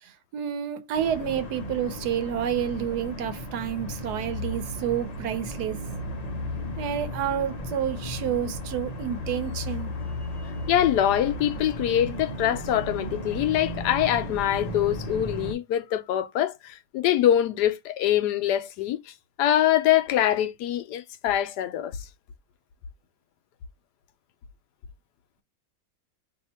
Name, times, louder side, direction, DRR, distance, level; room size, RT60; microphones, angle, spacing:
voice 1, 0.0-5.8 6.8-9.9, right 9 dB, 75° right, 1.2 m, -29 dB
sound 1, 0.9-15.5, left 1 dB, 60° left, 0.4 m, -35 dB
voice 2, 10.7-22.1, left 11 dB, 80° left, 1.1 m, -24 dB
2.8 x 2.7 x 4.2 m
omnidirectional pair, 1.8 m